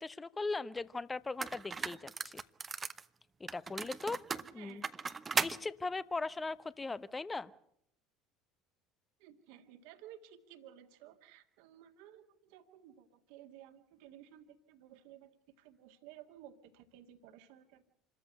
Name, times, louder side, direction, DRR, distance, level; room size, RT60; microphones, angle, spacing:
voice 1, 0.0-2.4 3.4-4.2 4.5-4.8 5.4-7.5, left 3 dB, 20° left, 16 dB, 1.0 m, -39 dB
sound 1, 0.8-0.9 1.4-3.0 3.5-5.6, right 5 dB, 25° right, 0.8 m, -37 dB
voice 2, 9.2-17.8, right 11 dB, 60° right, 7 dB, 1.9 m, -56 dB
27.5 x 13.5 x 8.0 m, 0.74 s
figure-of-eight pair, 65°, 0 cm